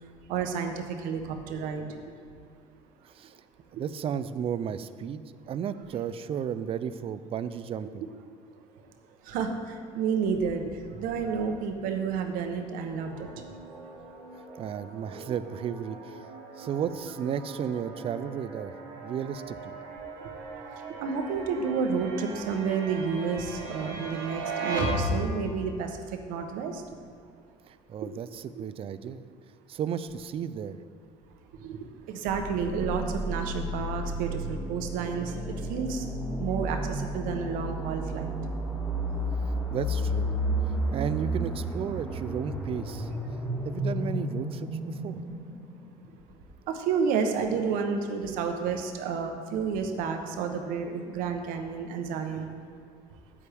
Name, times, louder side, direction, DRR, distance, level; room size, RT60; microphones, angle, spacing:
voice 1, 0.3-1.9 9.2-10.7 11.0-13.3 21.0-26.0 26.3-26.8 28.5-28.6 31.6-31.8 32.1-36.1 36.4-38.3 46.7-52.5, right 6 dB, 75° right, 5 dB, 0.9 m, -30 dB
voice 2, 3.7-5.2 5.5-8.0 10.9-11.0 14.3-16.3 16.6-19.8 27.7-29.3 29.7-30.8 39.4-40.4 40.9-43.1 43.6-45.2, right 8 dB, 40° right, 13 dB, 0.4 m, -34 dB
sound 1, 13.0-25.6, right 1 dB, 90° right, 1.5 m, -37 dB
sound 2, 32.3-46.0, right 1 dB, ahead, 1.5 m, -32 dB
8.6 x 8.4 x 3.5 m, 2.2 s
supercardioid pair, 85°, 14 cm